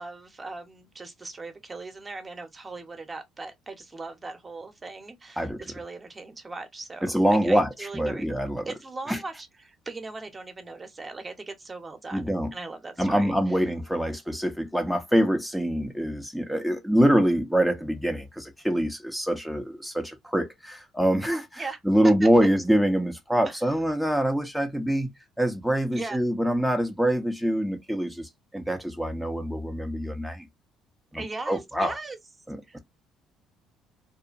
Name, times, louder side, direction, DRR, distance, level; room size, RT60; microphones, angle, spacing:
voice 1, 0.0-8.4 8.7-13.6 21.6-21.8 22.2-22.3 23.4-23.6 25.9-26.2 31.1-32.2 32.7-32.8, right 3 dB, 25° right, 0.8 m, -39 dB
voice 2, 7.0-8.7 9.1-9.2 12.1-12.5 13.0-25.1 25.4-30.5 31.1-31.9 32.5-32.8, equal, ahead, 0.6 m, -25 dB
2.7 x 2.1 x 2.5 m
supercardioid pair, 75°, 0 cm